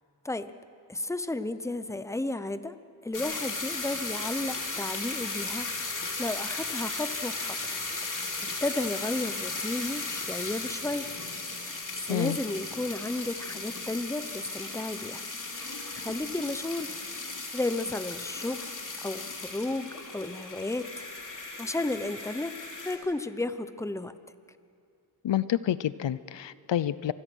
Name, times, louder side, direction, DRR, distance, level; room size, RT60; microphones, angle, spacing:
voice 1, 0.9-2.8 3.0-7.6 8.0-8.2 8.6-11.1 11.6-15.2 15.5-16.9 17.5-18.7 19.0-21.0 21.3-22.6 22.8-24.1, left 2 dB, 5° left, 12 dB, 0.8 m, -33 dB
sound 1, 3.1-23.0, left 3 dB, 40° left, 3.1 m, -36 dB
voice 2, 25.2-27.1, left 11 dB, 70° left, 16 dB, 0.6 m, -28 dB
26.0 x 20.0 x 6.3 m, 2.4 s
wide cardioid pair, 75°, 45 cm